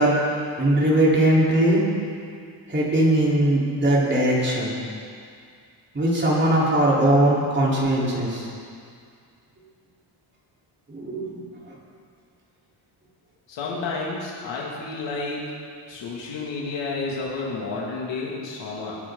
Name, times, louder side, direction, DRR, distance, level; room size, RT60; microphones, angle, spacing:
voice 1, 0.0-1.8 2.7-4.7 5.9-8.5 10.9-11.4, right 1 dB, 25° right, -6 dB, 4.1 m, -20 dB
voice 2, 13.5-15.4 15.9-19.0, left 3 dB, 85° left, -4 dB, 2.6 m, -31 dB
22.0 x 10.0 x 4.0 m, 2.3 s
cardioid pair, 125°, 43 cm